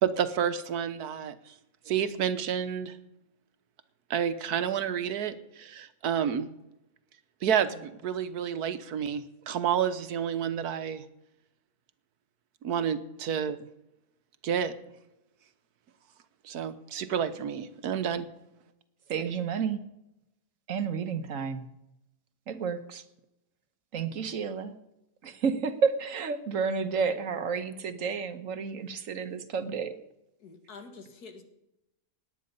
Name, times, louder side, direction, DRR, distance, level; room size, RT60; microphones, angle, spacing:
voice 1, 0.0-1.3 1.9-2.9 4.1-6.5 7.4-11.0 12.6-13.6 14.4-14.7 16.4-18.3, right 8 dB, 85° right, 12 dB, 1.4 m, -29 dB
voice 2, 19.1-19.8 20.7-21.6 22.5-23.0 23.9-24.7 25.2-30.0, right 5 dB, 60° right, 10 dB, 1.3 m, -31 dB
voice 3, 30.4-31.4, left 4 dB, 85° left, 6 dB, 2.2 m, -47 dB
18.5 x 9.8 x 5.4 m, 0.90 s
omnidirectional pair, 1.6 m